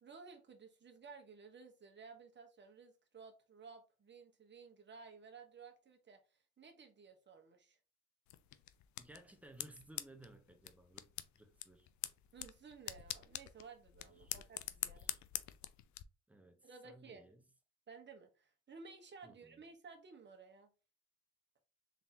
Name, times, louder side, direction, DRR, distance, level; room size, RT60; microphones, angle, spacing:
voice 1, 0.0-7.8 12.3-15.1 16.6-17.2 17.9-20.7, right 5 dB, 35° right, 1.2 m, -56 dB
sound 1, 8.3-16.0, left 13 dB, 70° left, 0.5 m, -46 dB
voice 2, 9.0-11.9 14.2-14.4 14.8-15.2 16.3-17.4 19.2-19.6, right 1 dB, 5° right, 1.0 m, -59 dB
3.8 x 3.6 x 2.9 m
cardioid pair, 90°, 30 cm